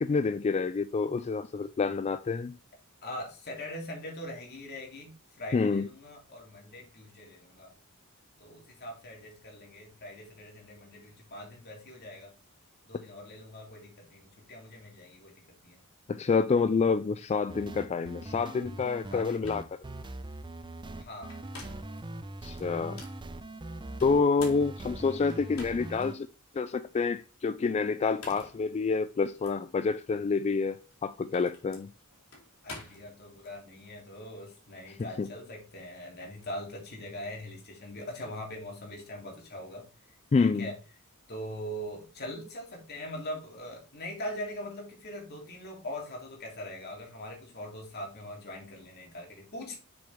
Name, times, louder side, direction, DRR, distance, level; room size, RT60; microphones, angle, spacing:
voice 1, 0.0-2.5 5.5-5.9 16.1-19.6 22.4-23.0 24.0-26.3 26.5-31.9 35.2-35.3 40.3-40.7, left 4 dB, 30° left, 0.3 m, -28 dB
voice 2, 3.0-7.7 8.4-12.3 12.8-15.8 19.1-19.5 20.9-21.3 32.6-39.8 40.1-40.7 41.3-49.8, left 1 dB, 50° left, 3.2 m, -42 dB
sound 1, 17.5-26.1, right 2 dB, 20° right, 0.6 m, -41 dB
sound 2, 19.1-19.2 19.4-19.7 21.1-22.0 22.6-23.2 24.0-26.1 26.6-26.7 27.9-28.6 29.4-29.6 30.8-33.5, left 3 dB, 70° left, 3.5 m, -48 dB
7.0 x 6.8 x 3.6 m
head